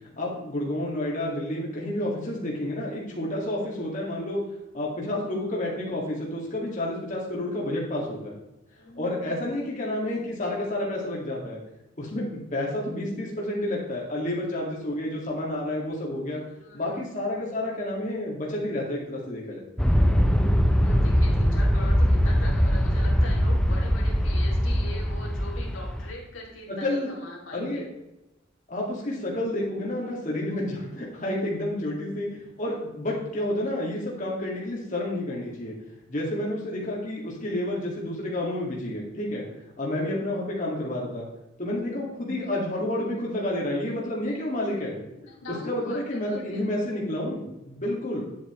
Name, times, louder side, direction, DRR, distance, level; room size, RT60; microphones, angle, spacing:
voice 1, 0.2-4.4 4.7-8.4 9.0-11.6 12.0-16.4 16.7-19.6 26.8-27.1 27.5-27.8 28.7-35.7 36.1-39.5 39.8-41.3 41.6-45.0 45.6-48.2, left 1 dB, 40° left, -3 dB, 2.0 m, -30 dB
voice 2, 8.6-9.6 16.3-17.0 20.6-27.9 45.1-46.6, left 2 dB, 85° left, -2 dB, 2.5 m, -41 dB
Aircraft, 19.8-26.1, equal, 5° left, 0.6 m, -22 dB
9.7 x 7.8 x 3.1 m, 0.91 s
head